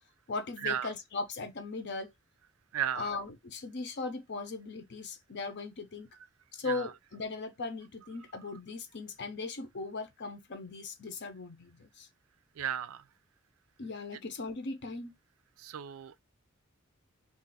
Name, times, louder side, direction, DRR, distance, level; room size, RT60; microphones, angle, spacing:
voice 1, 0.3-2.1 2.9-6.1 6.5-12.1 13.8-15.1, left 3 dB, 55° left, 0.7 m, -38 dB
voice 2, 2.7-3.1 6.7-6.9 12.6-13.0 15.6-16.2, right 9 dB, 75° right, 0.4 m, -34 dB
2.5 x 2.4 x 3.9 m
head